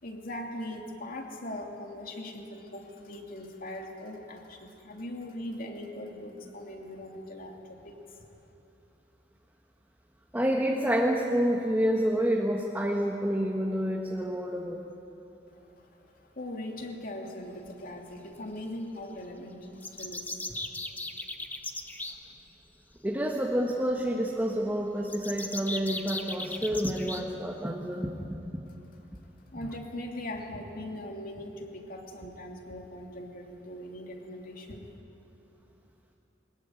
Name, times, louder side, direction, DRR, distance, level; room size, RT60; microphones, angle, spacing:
voice 1, 0.0-8.0 15.9-16.0 16.3-20.4 29.5-34.9, left 1 dB, 55° left, 1 dB, 2.9 m, -40 dB
voice 2, 10.3-14.8 23.0-28.1, equal, 10° right, -1 dB, 1.6 m, -28 dB
sound 1, 19.8-22.2 25.1-27.2, left 2 dB, 10° left, 1.2 m, -37 dB
22.5 x 20.5 x 9.3 m, 3.0 s
head